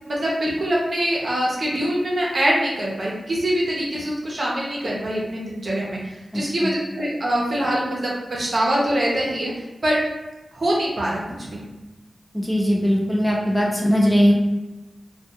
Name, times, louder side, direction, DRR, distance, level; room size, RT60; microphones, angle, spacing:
voice 1, 0.1-6.0 6.3-9.5 9.8-10.0 10.6-11.2 11.5-11.6, right 1 dB, 50° right, -4 dB, 0.7 m, -23 dB
voice 2, 6.3-6.7 12.3-14.3, equal, 10° left, -3 dB, 0.5 m, -20 dB
2.3 x 2.3 x 2.8 m, 1.0 s
wide cardioid pair, 70°, 0 cm